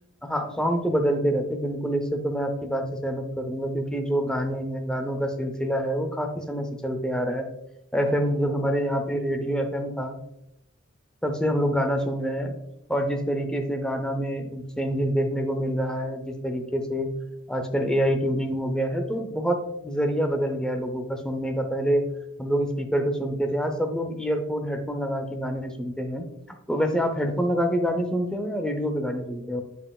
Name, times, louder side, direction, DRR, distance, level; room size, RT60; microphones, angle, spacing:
voice 1, 0.2-7.5 7.9-10.2 11.2-12.5 12.9-17.1 17.5-22.0 22.4-26.2 26.7-29.6, equal, 5° left, 4 dB, 0.6 m, -26 dB
7.5 x 5.3 x 2.3 m, 0.81 s
head